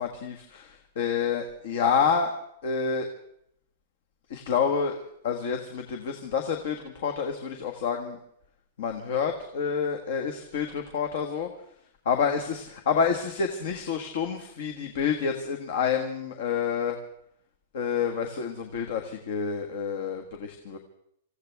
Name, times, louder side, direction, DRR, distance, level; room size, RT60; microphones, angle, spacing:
voice 1, 0.0-2.3 2.6-3.1 4.3-8.2 8.8-11.5 12.1-17.0 17.7-20.8, left 6 dB, 50° left, 5 dB, 1.6 m, -28 dB
26.5 x 15.5 x 3.5 m, 0.72 s
supercardioid pair, 180°, 0 cm